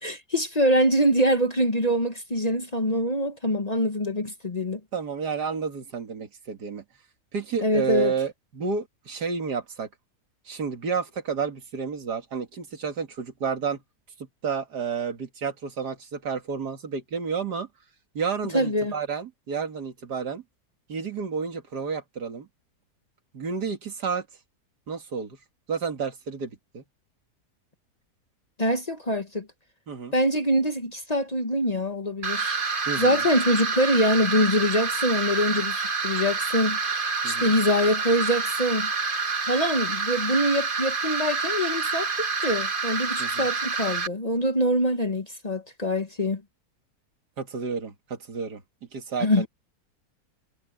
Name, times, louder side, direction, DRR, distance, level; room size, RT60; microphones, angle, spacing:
voice 1, 0.0-4.8 7.6-8.1 18.5-18.9 28.6-29.5 30.1-32.6 33.0-38.9 39.5-46.4 49.2-49.4, equal, 25° left, 1.3 m, -24 dB
voice 2, 4.9-6.8 7.3-9.9 10.5-13.8 14.2-17.7 18.1-20.4 20.9-22.5 23.3-24.3 24.9-25.4 25.7-26.8 29.9-30.1 32.9-33.2 37.2-37.5 43.2-43.5 47.4-48.6 48.9-49.5, right 5 dB, 85° right, 2.6 m, -31 dB
sound 1, 32.2-44.1, right 4 dB, 35° right, 1.4 m, -28 dB
omnidirectional pair, 1.7 m